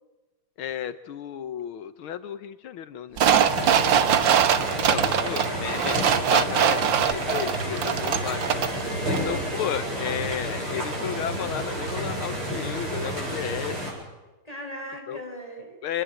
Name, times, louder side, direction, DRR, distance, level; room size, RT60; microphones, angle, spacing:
voice 1, 0.6-3.2 4.7-8.4 9.0-13.8 15.1-15.2 15.8-16.0, left 9 dB, 85° left, 12 dB, 1.9 m, -33 dB
sound 1, 3.2-8.8 9.1-9.2, right 8 dB, 65° right, 1.8 m, -22 dB
sound 2, 3.5-13.9, right 1 dB, 85° right, 9.2 m, -30 dB
voice 2, 3.6-4.0 8.8-9.3 14.4-15.8, equal, 15° left, 2 dB, 6.1 m, -39 dB
26.5 x 20.5 x 7.7 m, 1.1 s
omnidirectional pair, 2.3 m